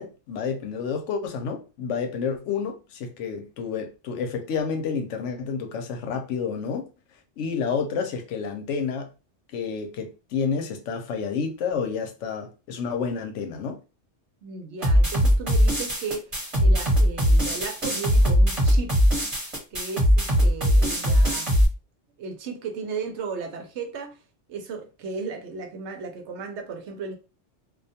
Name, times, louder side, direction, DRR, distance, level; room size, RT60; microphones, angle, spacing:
voice 1, 0.0-6.9 7.4-9.1 9.5-13.8, left 6 dB, 85° left, 0.9 m, -29 dB
voice 2, 14.4-19.0 19.7-21.6 22.2-24.2 24.5-27.2, right 5 dB, 75° right, 0.9 m, -35 dB
sound 1, 14.8-21.6, equal, 30° right, 1.0 m, -20 dB
2.3 x 2.2 x 2.7 m
omnidirectional pair, 1.2 m